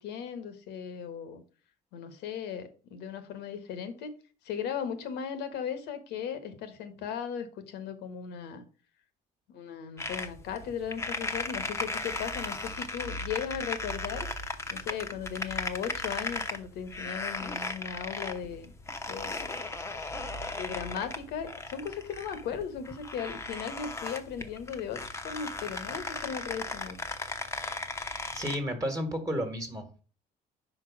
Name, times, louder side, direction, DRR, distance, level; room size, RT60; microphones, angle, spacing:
voice 1, 0.0-1.4 1.9-4.2 4.4-8.6 9.5-14.3 14.7-18.7 19.1-19.6 20.6-27.0, left 7 dB, 85° left, 1.3 m, -37 dB
Rope under tension, 10.0-28.6, left 2 dB, 15° left, 0.8 m, -37 dB
voice 2, 28.3-30.0, equal, 20° right, 1.4 m, -32 dB
5.3 x 4.6 x 6.0 m
cardioid pair, 110°, 17 cm